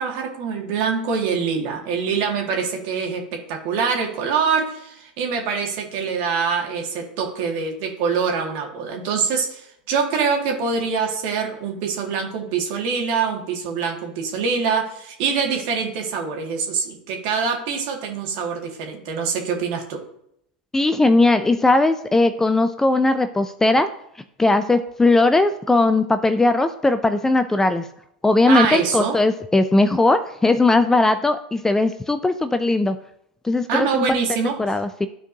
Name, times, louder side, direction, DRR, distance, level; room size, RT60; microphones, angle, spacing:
voice 1, 0.0-20.0 28.5-29.2 33.7-34.6, right 5 dB, 50° right, 1 dB, 2.0 m, -24 dB
voice 2, 20.7-23.9 24.4-27.9 28.2-33.0 33.4-34.2 34.6-35.1, left 2 dB, 10° left, 10 dB, 0.4 m, -18 dB
13.0 x 4.4 x 2.7 m, 0.74 s
figure-of-eight pair, 90°, 5 cm